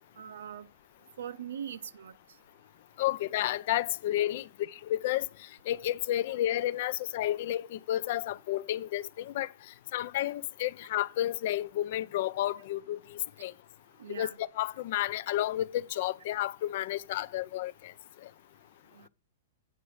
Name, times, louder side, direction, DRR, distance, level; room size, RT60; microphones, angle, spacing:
voice 1, 0.2-0.7 1.2-2.2 14.0-14.4 18.9-19.1, right 9 dB, 80° right, 0.6 m, -41 dB
voice 2, 3.0-9.5 9.9-13.5 14.1-17.9 18.2-18.3, left 13 dB, 40° left, 0.4 m, -31 dB
8.6 x 5.9 x 4.7 m
hypercardioid pair, 175°, 0 cm